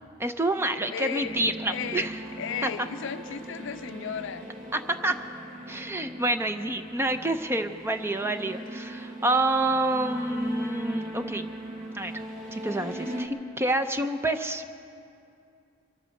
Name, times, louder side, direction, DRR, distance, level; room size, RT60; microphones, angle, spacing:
voice 1, 0.2-2.2 2.6-2.7 4.7-5.2 5.7-11.4 11.9-12.1 12.5-14.6, right 2 dB, 10° right, 8 dB, 0.5 m, -28 dB
voice 2, 0.9-2.1 2.4-4.5, left 7 dB, 65° left, 12 dB, 0.5 m, -35 dB
sound 1, 1.2-13.3, right 1 dB, 40° right, 1.5 m, -39 dB
23.5 x 8.2 x 6.4 m, 2.5 s
head